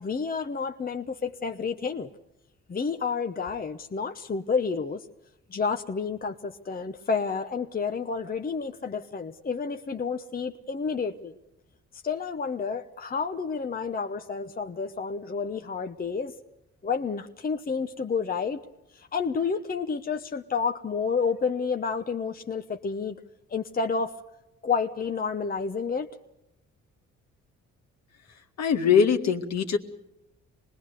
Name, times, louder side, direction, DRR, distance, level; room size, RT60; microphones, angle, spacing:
voice 1, 0.0-2.1 2.7-5.0 5.5-11.3 12.0-16.3 16.8-18.6 18.9-23.2 23.5-24.1 24.6-26.1, left 5 dB, 30° left, 6 dB, 0.9 m, -30 dB
voice 2, 28.6-29.8, left 7 dB, 60° left, 5 dB, 2.0 m, -22 dB
26.0 x 20.0 x 6.7 m, 0.90 s
cardioid pair, 90°, 30 cm